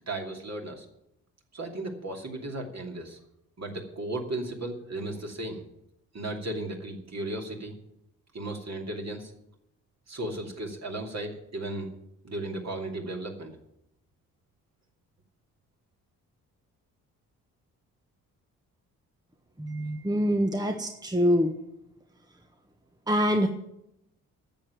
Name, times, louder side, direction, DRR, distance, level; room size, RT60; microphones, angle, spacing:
voice 1, 0.1-0.8 1.5-3.2 3.6-5.6 6.1-7.7 8.3-9.3 10.1-11.9 12.2-13.5, right 1 dB, 35° right, 2 dB, 2.7 m, -35 dB
voice 2, 19.6-21.5 23.1-23.5, equal, 10° right, 5 dB, 1.3 m, -25 dB
10.5 x 8.0 x 9.3 m, 0.82 s
figure-of-eight pair, 40°, 43 cm